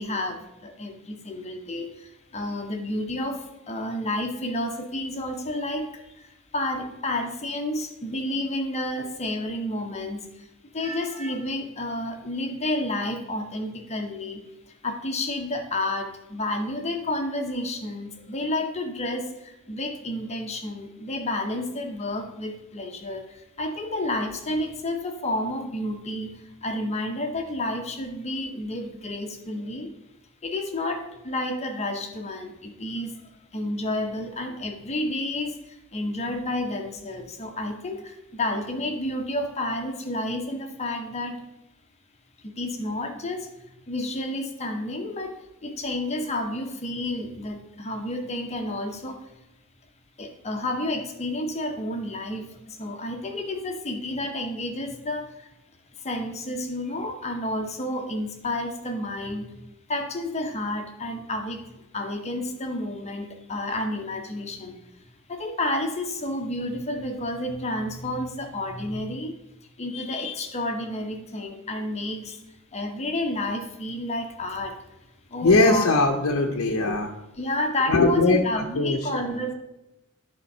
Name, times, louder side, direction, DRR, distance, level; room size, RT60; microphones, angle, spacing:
voice 1, 0.0-10.5 10.7-29.9 30.4-33.2 33.5-41.4 42.4-43.5 43.9-49.2 50.2-55.5 55.9-64.8 65.3-69.3 69.8-72.4 72.7-74.8 75.3-75.9 77.4-79.5, left 1 dB, 30° left, 4 dB, 0.8 m, -30 dB
voice 2, 75.4-77.1 77.9-79.4, left 2 dB, 75° left, 1 dB, 0.7 m, -21 dB
11.0 x 3.7 x 5.4 m, 0.96 s
head